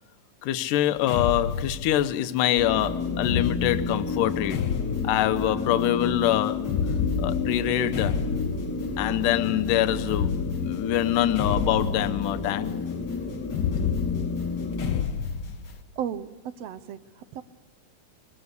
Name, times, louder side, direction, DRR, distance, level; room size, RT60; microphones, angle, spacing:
voice 1, 0.4-4.7 5.0-6.7 7.2-8.2 9.0-12.8, left 12 dB, 75° left, 2.4 m, -25 dB
sound 1, 1.0-2.3 3.2-5.6 6.6-9.2 10.0-12.5 13.5-15.8, left 6 dB, 60° left, 1.1 m, -30 dB
sound 2, 2.6-15.0, left 4 dB, 10° left, 0.7 m, -31 dB
voice 2, 16.0-16.3 16.6-17.4, right 9 dB, 70° right, 1.5 m, -34 dB
23.0 x 22.0 x 8.1 m
omnidirectional pair, 3.8 m